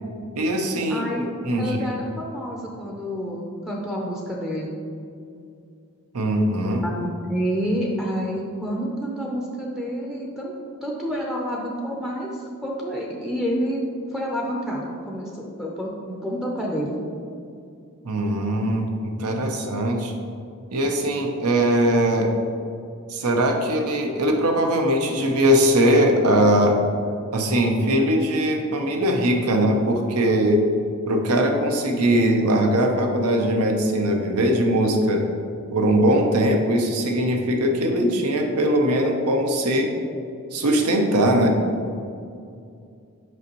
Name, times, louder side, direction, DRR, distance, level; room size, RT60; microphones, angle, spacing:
voice 1, 0.4-1.0 1.4-1.9 6.1-6.8 18.0-20.1 20.7-22.3 23.1-26.8 27.3-30.6 31.1-35.2 35.7-39.9 40.5-41.6, right 1 dB, 85° right, 2 dB, 0.8 m, -20 dB
voice 2, 0.9-1.2 1.5-4.7 6.8-10.5 10.8-13.8 14.1-17.0, equal, ahead, -3 dB, 0.5 m, -28 dB
6.3 x 5.3 x 3.0 m, 2.4 s
head